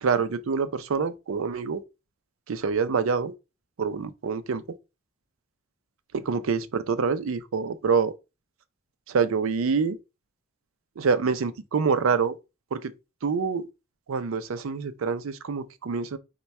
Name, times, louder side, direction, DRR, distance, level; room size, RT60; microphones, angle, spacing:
voice 1, 0.0-1.8 2.5-3.3 3.8-4.6 6.1-8.1 9.1-10.0 11.0-12.4 12.7-12.9 13.2-13.7 14.1-16.2, right 5 dB, 85° right, 0.5 m, -26 dB
4.1 x 2.2 x 4.5 m
head